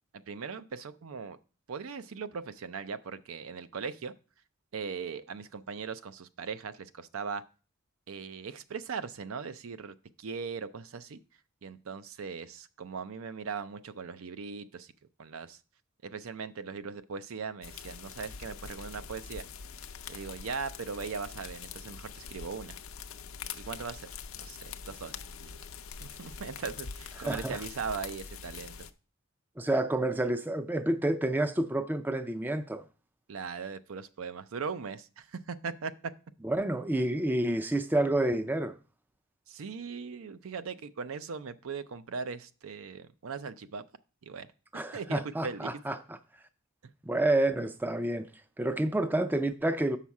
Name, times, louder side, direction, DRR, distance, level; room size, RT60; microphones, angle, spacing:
voice 1, 0.1-1.4 1.7-4.1 4.7-7.4 8.1-11.2 11.6-14.9 15.2-15.6 16.0-19.4 20.1-22.8 23.5-24.1 24.4-25.5 26.0-28.9 33.3-35.9 39.5-43.8 44.2-44.5 44.7-45.7, right 5 dB, 75° right, 0.5 m, -39 dB
sound 1, 17.6-28.9, left 6 dB, 70° left, 0.5 m, -44 dB
voice 2, 27.2-27.6 29.6-32.8 36.4-38.7 44.7-46.2 47.1-48.3 48.6-50.0, right 1 dB, 10° right, 0.4 m, -29 dB
7.2 x 5.7 x 4.7 m
head